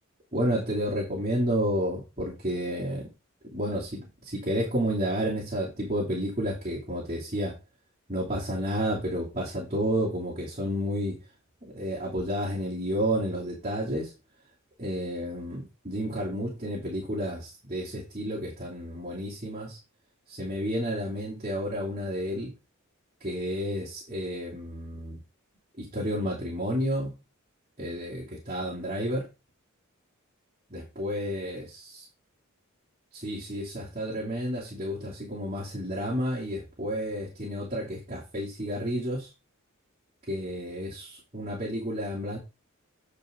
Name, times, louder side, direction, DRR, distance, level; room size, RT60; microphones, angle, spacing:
voice 1, 0.3-3.1 3.4-7.6 8.1-11.2 11.6-14.1 14.8-19.8 20.3-22.5 23.2-25.2 25.8-27.1 27.8-29.3 30.7-31.8 33.1-39.3 40.3-42.4, equal, 35° right, -5 dB, 2.8 m, -31 dB
9.0 x 4.9 x 5.1 m, 0.27 s
head